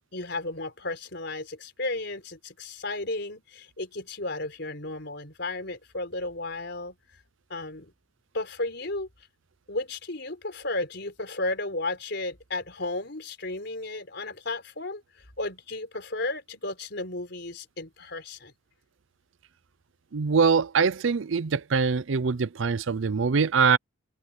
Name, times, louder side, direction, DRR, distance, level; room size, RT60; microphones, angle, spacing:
voice 1, 0.1-6.9 7.5-7.9 8.3-9.1 9.7-15.0 15.4-18.5, left 2 dB, 60° left, 4.8 m, -33 dB
voice 2, 20.1-23.8, right 5 dB, 80° right, 0.6 m, -23 dB
head